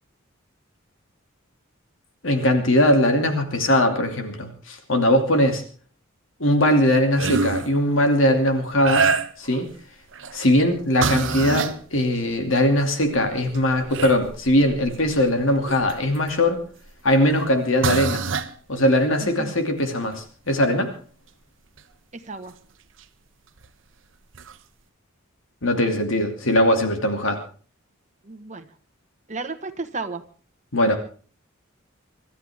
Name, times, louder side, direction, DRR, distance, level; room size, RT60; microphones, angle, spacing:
voice 1, 2.2-5.6 6.4-9.1 9.4-9.7 10.3-16.6 17.0-18.2 18.7-20.9 25.6-27.4 30.7-31.0, left 1 dB, 70° left, 5 dB, 2.6 m, -20 dB
sound 1, 7.2-7.7 8.8-9.6 10.1-10.4 11.0-11.8 12.7-12.8 13.2-16.3 17.3-17.4 17.8-18.5 21.8-21.9 23.6-23.7 24.3-24.5, right 4 dB, 65° right, 1.0 m, -26 dB
voice 2, 19.2-19.5 22.3-22.5 28.2-28.6 29.3-30.2, right 3 dB, 35° right, 6 dB, 1.4 m, -33 dB
25.5 x 13.0 x 3.6 m, 0.40 s
head